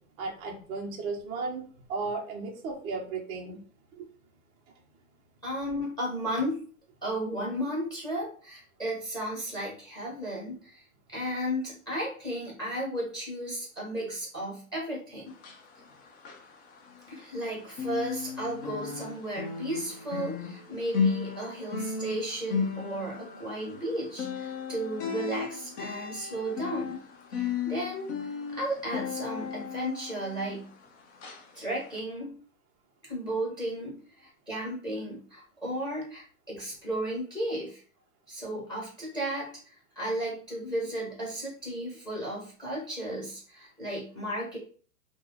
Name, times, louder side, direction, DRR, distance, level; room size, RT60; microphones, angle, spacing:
voice 1, 0.2-3.6 3.9-4.1, right 4 dB, 15° right, -2 dB, 0.3 m, -35 dB
voice 2, 5.4-6.6 7.0-10.8 11.1-15.3 17.1-27.0 27.3-28.1 28.5-30.7 31.5-32.3 33.0-37.8 38.3-39.5 40.0-44.6, right 1 dB, 10° left, -4 dB, 1.3 m, -34 dB
sound 1, 15.3-17.5 17.7-30.8 31.2-31.4 31.9-32.0, left 6 dB, 50° left, 0.8 m, -35 dB
3.1 x 2.0 x 3.6 m, 0.42 s
hypercardioid pair, 125°, 43 cm